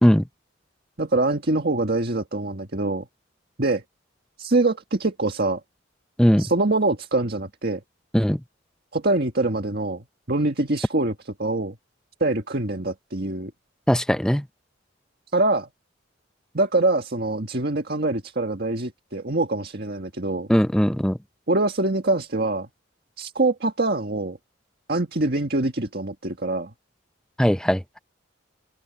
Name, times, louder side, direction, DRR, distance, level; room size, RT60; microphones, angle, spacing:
voice 1, 1.0-3.1 3.6-3.8 4.4-5.6 6.4-7.8 8.9-11.8 12.2-13.5 15.3-15.7 16.5-20.5 21.5-22.7 23.2-24.4 24.9-26.7, right 2 dB, 50° right, 1.7 m, -24 dB
voice 2, 13.9-14.4 20.5-21.2 27.4-28.0, equal, 5° left, 0.6 m, -19 dB
open air
head